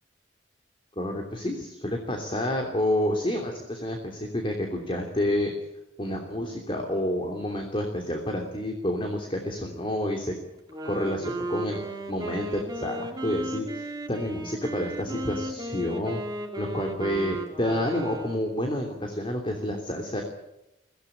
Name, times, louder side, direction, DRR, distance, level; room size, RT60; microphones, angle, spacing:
voice 1, 1.0-5.5 6.0-10.3 10.8-11.8 12.1-16.2 16.6-20.2, left 1 dB, 30° left, 3 dB, 3.1 m, -29 dB
Wind instrument woodwind instrument, 10.6-18.6, right 1 dB, 20° right, 2.6 m, -35 dB
24.0 x 17.0 x 8.8 m, 0.89 s
head